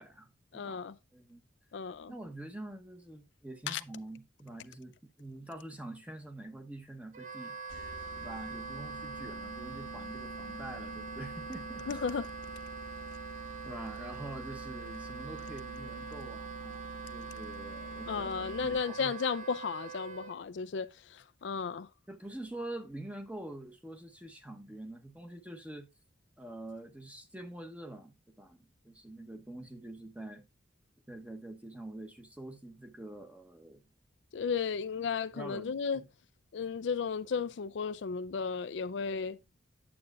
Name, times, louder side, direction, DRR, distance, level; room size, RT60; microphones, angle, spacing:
voice 1, 0.0-1.4 2.1-7.6 8.2-12.0 13.6-19.2 22.1-25.9 26.4-30.4 31.1-33.8 35.0-35.1 35.3-36.1, right 1 dB, 5° right, 0.9 m, -46 dB
voice 2, 0.5-0.9 1.7-2.1 3.7-3.8 11.9-12.3 18.1-21.9 34.3-36.0 36.5-39.4, left 6 dB, 65° left, 0.4 m, -34 dB
Wind instrument woodwind instrument, 7.1-20.3, right 6 dB, 40° right, 0.9 m, -44 dB
sound 1, 7.7-19.1, left 1 dB, 90° left, 1.4 m, -47 dB
8.7 x 7.7 x 2.4 m
head